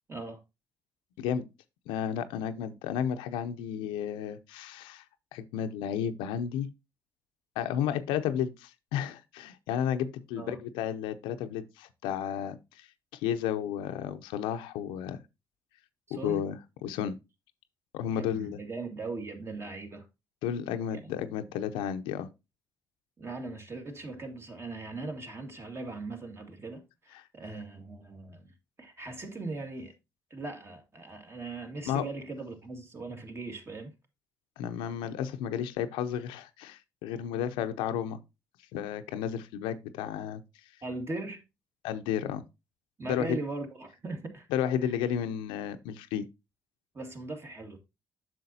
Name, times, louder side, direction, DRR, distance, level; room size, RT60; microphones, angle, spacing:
voice 1, 0.1-0.4 10.4-10.6 16.1-16.4 18.1-20.1 20.9-21.2 23.2-29.9 30.3-33.9 40.8-41.4 43.0-44.5 44.8-44.9 46.9-47.8, right 3 dB, 30° right, 2.1 m, -39 dB
voice 2, 1.9-5.0 5.3-6.7 7.6-15.2 16.1-17.2 17.9-18.6 20.4-22.3 27.1-27.2 31.9-32.1 34.6-38.2 38.7-40.4 41.8-42.4 43.1-43.4 44.5-46.3, left 9 dB, 85° left, 0.6 m, -32 dB
7.7 x 6.4 x 2.8 m
supercardioid pair, 70°, 8 cm